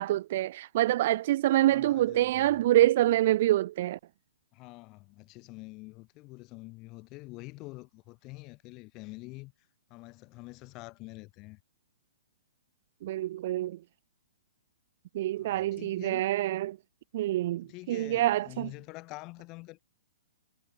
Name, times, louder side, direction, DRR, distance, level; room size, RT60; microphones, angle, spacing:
voice 1, 0.0-4.0 13.0-13.8 15.1-16.8 17.1-18.7, right 14 dB, 45° right, 0.5 m, -26 dB
voice 2, 1.6-2.6 4.5-9.5 9.9-11.6 15.4-16.2 17.6-19.8, left 23 dB, 30° left, 7.6 m, -46 dB
figure-of-eight pair, 115°, 0 cm